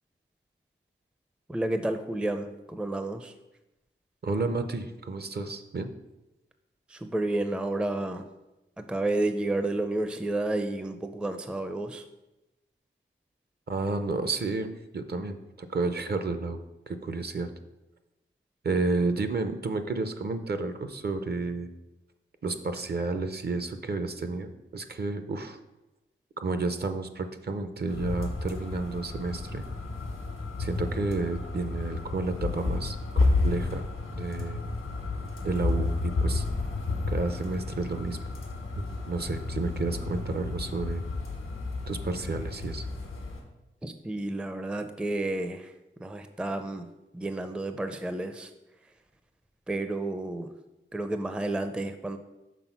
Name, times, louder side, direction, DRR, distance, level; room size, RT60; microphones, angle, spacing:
voice 1, 1.5-3.3 6.9-8.3 8.8-12.0 43.8-45.7 46.0-48.5 48.8-48.9 49.7-50.5 50.9-52.2, right 2 dB, 5° right, 8 dB, 0.4 m, -31 dB
voice 2, 4.2-5.9 13.7-17.5 18.6-21.7 22.4-25.6 26.4-29.6 30.6-33.8 34.1-34.6 35.4-36.4 37.1-38.2 38.8-41.0 41.9-42.9, right 3 dB, 50° right, 8 dB, 0.6 m, -31 dB
sound 1, 27.9-43.4, left 3 dB, 90° left, 1.3 m, -31 dB
6.1 x 3.7 x 5.8 m, 0.98 s
wide cardioid pair, 70°, 21 cm